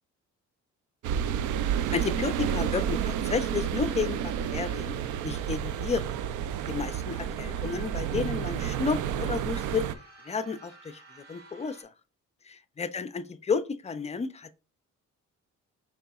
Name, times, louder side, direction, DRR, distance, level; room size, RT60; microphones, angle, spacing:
sound 1, 1.0-9.9, right 9 dB, 80° right, 0.4 m, -30 dB
voice 1, 1.9-6.2 6.7-9.9 10.2-11.9 12.4-14.5, left 5 dB, 20° left, 0.4 m, -32 dB
sound 2, 2.4-11.8, right 3 dB, 55° right, 2.5 m, -54 dB
4.7 x 3.8 x 2.3 m
cardioid pair, 90°, 30 cm